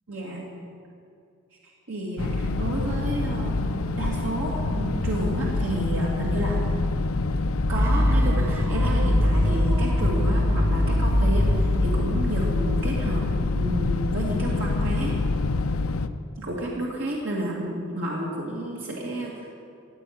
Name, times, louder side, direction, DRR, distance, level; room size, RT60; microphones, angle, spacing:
voice 1, 0.1-0.5 1.9-3.6 4.0-6.6 7.7-13.3 13.6-15.2 16.4-19.5, right 1 dB, 70° right, -3 dB, 2.2 m, -30 dB
sound 1, 2.2-16.1, left 3 dB, 85° left, 0.6 m, -26 dB
sound 2, 7.7-13.6, equal, 10° right, 1.0 m, -24 dB
15.0 x 8.6 x 9.3 m, 2.4 s
head